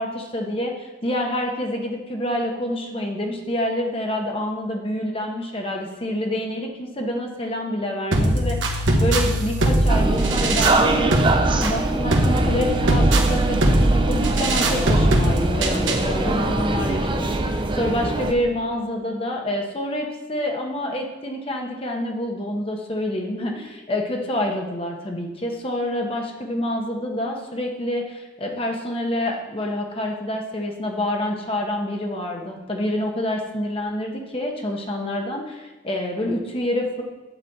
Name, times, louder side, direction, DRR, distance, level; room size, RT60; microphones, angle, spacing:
voice 1, 0.0-11.2 11.6-37.0, left 1 dB, 30° left, 2 dB, 0.9 m, -27 dB
sound 1, 8.1-16.1, right 1 dB, 80° right, 1.3 m, -21 dB
sound 2, 9.9-18.3, right 2 dB, 25° right, 0.6 m, -23 dB
8.0 x 5.0 x 7.2 m, 1.2 s
head